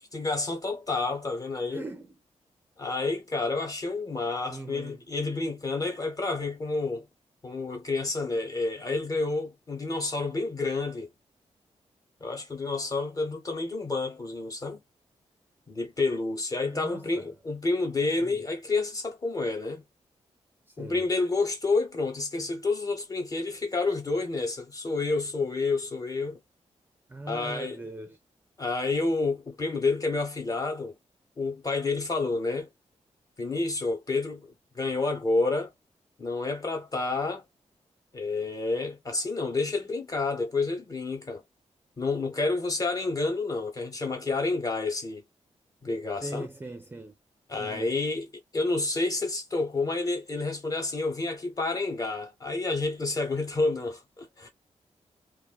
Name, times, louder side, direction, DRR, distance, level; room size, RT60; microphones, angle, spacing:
voice 1, 0.1-1.8 2.8-7.0 7.4-11.1 12.2-14.8 15.7-19.8 20.8-26.4 27.3-27.8 28.6-31.0 31.4-32.7 33.4-35.7 36.2-37.4 38.1-41.4 42.0-45.2 45.8-46.5 47.5-54.5, left 3 dB, 30° left, 1.1 m, -29 dB
voice 2, 1.7-2.2 4.5-5.0 16.7-17.3 18.2-18.5 20.7-21.2 27.1-28.2 46.2-47.1 47.6-47.9, right 2 dB, 15° right, 0.4 m, -40 dB
2.5 x 2.5 x 2.2 m
wide cardioid pair, 165°, 12 cm